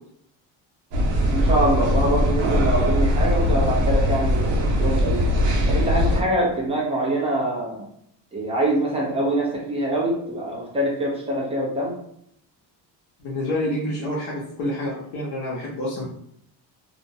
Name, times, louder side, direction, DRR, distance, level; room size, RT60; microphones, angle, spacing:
sound 1, 0.9-6.2, equal, 75° right, 0.8 m, -20 dB
voice 1, 1.3-5.3 5.7-7.9 8.3-12.0, right 1 dB, 15° right, -4 dB, 0.6 m, -24 dB
voice 2, 13.2-16.0, left 1 dB, 75° left, -5 dB, 0.9 m, -28 dB
2.4 x 2.1 x 2.6 m, 0.71 s
cardioid pair, 150°, 43 cm